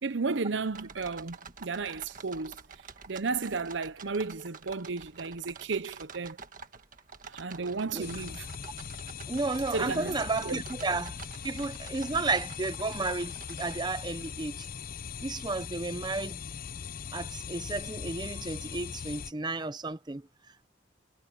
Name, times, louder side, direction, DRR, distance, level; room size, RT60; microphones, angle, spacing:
voice 1, 0.0-2.6 3.1-6.4 7.3-8.5 9.7-10.1 10.4-10.6, right 4 dB, 65° right, 0.8 m, -33 dB
sound 1, 0.7-13.8, right 5 dB, 45° right, 1.6 m, -48 dB
sound 2, 8.0-19.3, left 7 dB, 45° left, 0.5 m, -40 dB
voice 2, 9.3-11.2 11.4-14.7 15.2-16.4 17.1-20.2, right 3 dB, 20° right, 0.6 m, -32 dB
head